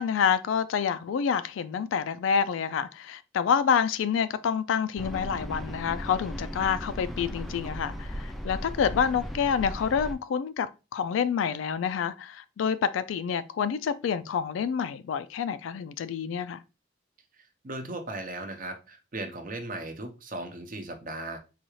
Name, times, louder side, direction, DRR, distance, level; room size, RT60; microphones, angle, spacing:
voice 1, 0.0-16.6, left 7 dB, 80° left, 0.3 m, -28 dB
sound 1, 5.0-10.1, equal, ahead, 0.3 m, -37 dB
voice 2, 17.6-21.4, right 2 dB, 45° right, 0.6 m, -37 dB
4.0 x 2.4 x 3.0 m
head